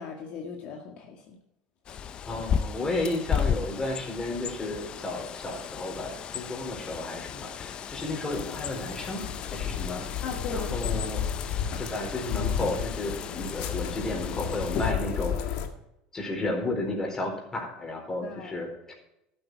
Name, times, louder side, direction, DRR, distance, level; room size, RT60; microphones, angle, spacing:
voice 1, 0.0-1.4 10.2-11.0 18.2-18.7, left 5 dB, 55° left, 2 dB, 1.8 m, -38 dB
Bird, 1.8-14.9, left 7 dB, 35° left, 0.7 m, -35 dB
voice 2, 2.2-9.2 9.5-10.0 10.5-11.2 11.8-15.6 16.1-18.9, left 2 dB, 20° left, 1 dB, 4.1 m, -33 dB
sound 1, 8.3-15.7, left 8 dB, 70° left, 1.7 m, -33 dB
13.0 x 8.8 x 4.7 m, 0.84 s
supercardioid pair, 125°, 3 cm